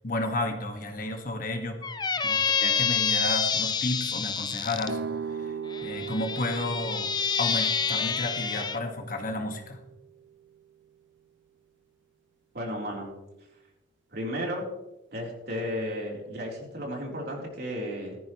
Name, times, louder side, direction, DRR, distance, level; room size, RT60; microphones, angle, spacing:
voice 1, 0.0-1.8 2.2-5.0 5.4-5.5 5.8-7.1 7.4-9.8, left 2 dB, 45° left, 4 dB, 1.7 m, -32 dB
Squeak, 1.8-4.9 5.7-8.8, left 6 dB, 25° left, 0.6 m, -28 dB
sound 1, 4.8-10.6, right 6 dB, 75° right, 0.6 m, -39 dB
voice 2, 12.5-13.1 14.1-14.7 15.1-18.2, equal, 55° right, -2 dB, 3.8 m, -33 dB
16.0 x 13.5 x 3.2 m, 0.97 s
head